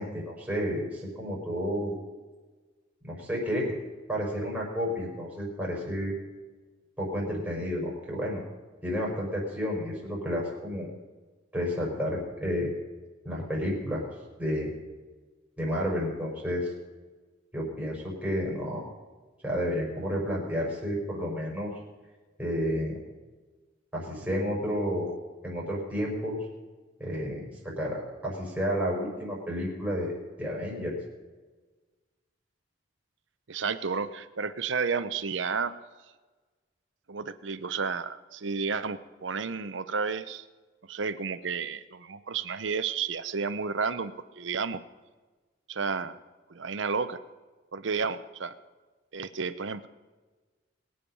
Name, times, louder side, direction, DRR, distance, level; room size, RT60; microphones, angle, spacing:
voice 1, 0.0-2.0 3.0-3.8 4.1-6.1 7.0-8.4 8.8-10.9 11.5-12.7 13.2-14.0 14.4-14.7 15.6-16.7 17.5-18.8 19.4-21.7 22.4-23.0 23.9-25.1 25.4-26.4 27.0-27.5 27.8-30.1 30.4-30.9, equal, 5° right, -4 dB, 5.0 m, -31 dB
voice 2, 33.5-35.7 37.1-40.5 40.9-44.8 45.7-46.2 46.5-47.2 47.7-48.5 49.1-49.9, right 5 dB, 75° right, 11 dB, 0.8 m, -31 dB
22.5 x 8.8 x 5.4 m, 1.3 s
head